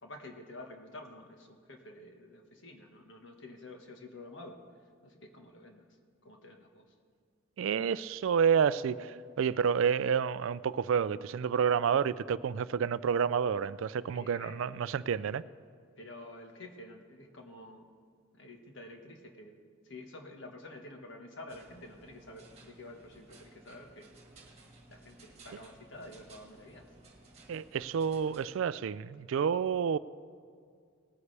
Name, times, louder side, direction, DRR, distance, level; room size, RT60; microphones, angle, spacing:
voice 1, 0.0-6.0 6.2-6.9 14.1-15.1 16.0-17.9 18.3-24.1 24.9-26.8, left 2 dB, 60° left, 3 dB, 1.4 m, -49 dB
voice 2, 7.6-15.4 27.5-30.0, right 7 dB, 70° right, 17 dB, 0.3 m, -29 dB
sound 1, 21.5-28.5, right 2 dB, 30° right, 1.7 m, -57 dB
19.0 x 9.6 x 3.3 m, 2.2 s
head